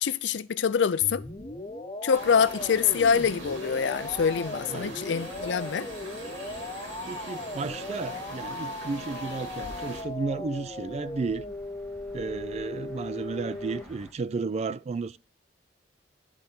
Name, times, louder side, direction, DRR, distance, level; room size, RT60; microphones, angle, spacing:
voice 1, 0.0-1.2 2.0-5.9, left 6 dB, 70° left, 0.4 m, -25 dB
sound 1, 1.0-13.8, left 2 dB, 25° left, 1.0 m, -38 dB
sound 2, 2.1-10.0, right 2 dB, 85° right, 3.1 m, -42 dB
voice 2, 7.1-11.4 12.1-15.2, right 4 dB, 35° right, 0.3 m, -33 dB
sound 3, 7.6-14.1, equal, ahead, 1.7 m, -53 dB
11.5 x 4.0 x 5.9 m
head